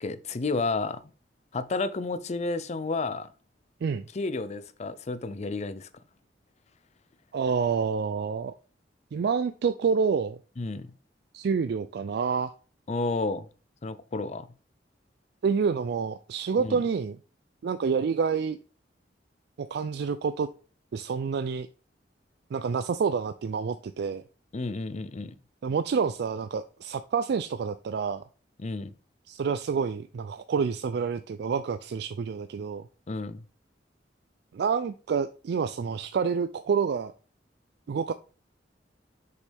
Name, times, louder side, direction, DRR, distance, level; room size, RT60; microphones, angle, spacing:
voice 1, 0.0-1.0 1.5-3.3 4.1-5.9 10.6-10.9 12.9-13.4 13.8-14.5 16.6-16.8 24.5-25.3 28.6-28.9 33.1-33.4, left 3 dB, 40° left, 0.5 m, -31 dB
voice 2, 7.3-8.6 9.1-10.4 11.3-12.5 15.4-17.2 17.6-18.6 19.6-20.5 20.9-21.7 22.5-24.2 25.6-28.2 29.3-32.9 34.5-37.1 37.9-38.1, right 5 dB, 65° right, 0.3 m, -28 dB
6.6 x 5.2 x 3.4 m
head